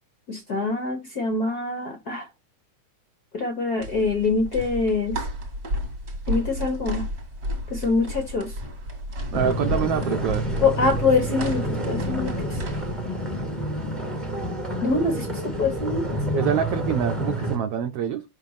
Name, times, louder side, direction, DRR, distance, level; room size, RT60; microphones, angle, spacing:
voice 1, 0.3-2.3 3.3-5.3 6.3-7.1 7.7-8.6 10.6-12.6 14.8-16.1, left 3 dB, 70° left, 0.9 m, -24 dB
sound 1, 3.8-12.9, equal, 35° right, 1.7 m, -33 dB
sound 2, 9.3-17.6, right 1 dB, ahead, 1.0 m, -28 dB
voice 2, 9.3-10.5 16.4-18.2, right 8 dB, 80° right, 1.3 m, -25 dB
5.6 x 4.5 x 5.4 m
omnidirectional pair, 3.5 m